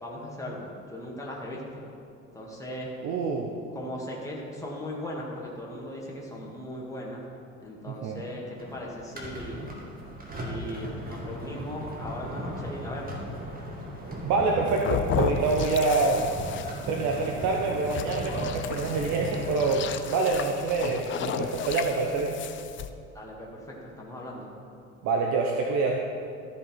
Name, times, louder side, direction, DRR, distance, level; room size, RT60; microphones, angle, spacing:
voice 1, 0.0-1.6 2.3-2.9 3.7-7.2 7.6-9.7 10.4-13.2 23.1-24.5, left 1 dB, 10° left, -3 dB, 1.9 m, -38 dB
voice 2, 3.0-3.5 7.8-8.2 14.2-16.2 16.9-22.4 25.0-26.0, right 3 dB, 45° right, 1 dB, 0.9 m, -26 dB
sound 1, 8.6-19.9, equal, 25° right, 1.9 m, -37 dB
sound 2, 14.7-22.9, left 8 dB, 35° left, 0.5 m, -34 dB
13.0 x 5.2 x 4.5 m, 2.5 s
figure-of-eight pair, 60°, 38 cm